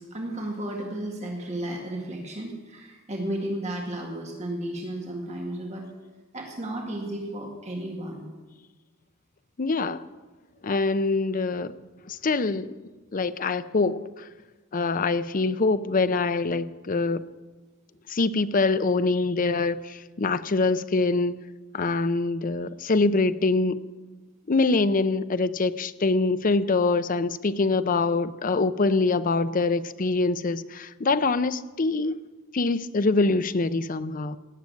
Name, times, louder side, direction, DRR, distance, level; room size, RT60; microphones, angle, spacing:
voice 1, 0.0-5.9 6.3-8.3, right 1 dB, 35° right, 1.9 m, -33 dB
voice 2, 9.6-10.0 10.6-11.7 12.1-12.7 13.1-14.0 14.7-17.2 18.1-21.4 21.7-23.8 24.5-32.2 32.5-34.4, left 3 dB, 45° left, 0.6 m, -24 dB
18.0 x 7.5 x 9.2 m
head